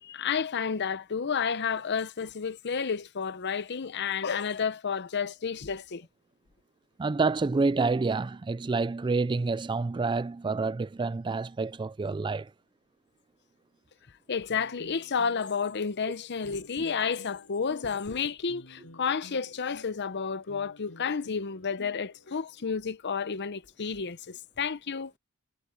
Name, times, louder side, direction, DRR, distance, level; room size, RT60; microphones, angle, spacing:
voice 1, 0.0-6.1 14.3-25.1, left 6 dB, 50° left, 0.7 m, -31 dB
voice 2, 7.0-12.5, right 3 dB, 20° right, 0.3 m, -28 dB
sound 1, 14.5-22.6, left 1 dB, 75° left, 6.1 m, -53 dB
head